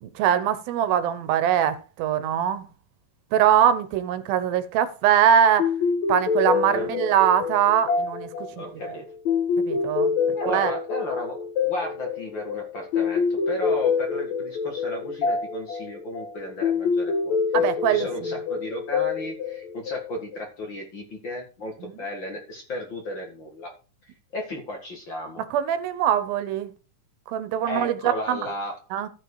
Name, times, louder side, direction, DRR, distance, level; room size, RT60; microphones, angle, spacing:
voice 1, 0.0-2.6 3.3-5.7 6.1-8.3 9.6-10.1 10.5-10.7 17.5-18.1 21.8-21.9 25.5-26.7 27.3-28.4 28.9-29.1, right 9 dB, 85° right, 2.8 m, -22 dB
sound 1, 5.6-20.4, left 5 dB, 60° left, 2.4 m, -26 dB
voice 2, 6.7-7.0 8.6-9.0 10.3-23.7 24.3-25.4 27.7-28.8, left 1 dB, 40° left, 2.1 m, -34 dB
13.0 x 6.2 x 4.8 m
omnidirectional pair, 4.1 m